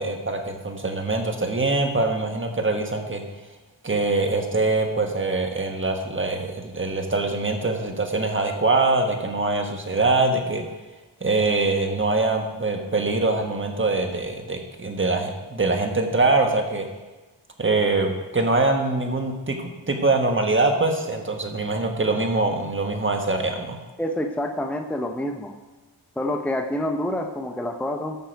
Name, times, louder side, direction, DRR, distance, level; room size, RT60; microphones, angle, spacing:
voice 1, 0.0-3.2 3.8-10.6 11.2-16.9 17.6-23.8, right 3 dB, 25° right, 4 dB, 1.5 m, -23 dB
voice 2, 24.0-25.5 26.2-28.2, left 1 dB, 5° left, 4 dB, 0.7 m, -27 dB
14.0 x 5.9 x 4.6 m, 1.2 s
cardioid pair, 70°, 47 cm